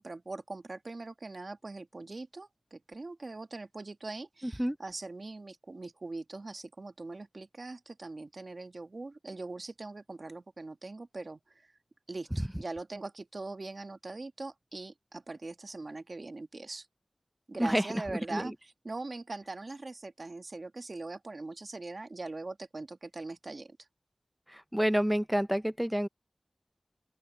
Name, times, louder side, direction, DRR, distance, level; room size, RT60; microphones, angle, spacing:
voice 1, 0.0-11.6 12.1-16.9 17.5-23.8, right 3 dB, 60° right, 1.8 m, -42 dB
voice 2, 17.6-18.0 18.3-18.5 24.5-26.1, equal, 5° right, 0.7 m, -28 dB
open air
wide cardioid pair, 55°, 0 cm